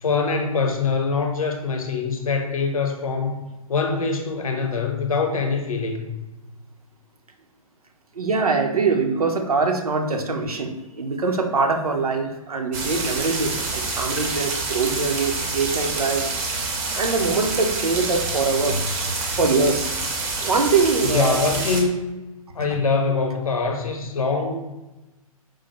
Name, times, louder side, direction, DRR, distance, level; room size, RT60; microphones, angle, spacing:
voice 1, 0.0-3.4 3.7-6.1 21.0-21.9 22.5-24.5, left 4 dB, 70° left, 3 dB, 0.6 m, -23 dB
voice 2, 8.1-16.2 16.9-19.9 20.4-21.4 22.7-22.8, right 4 dB, 80° right, 4 dB, 0.6 m, -23 dB
sound 1, 12.7-21.8, right 3 dB, 20° right, 0.4 m, -27 dB
4.7 x 2.0 x 2.9 m, 1.1 s
figure-of-eight pair, 125°, 19 cm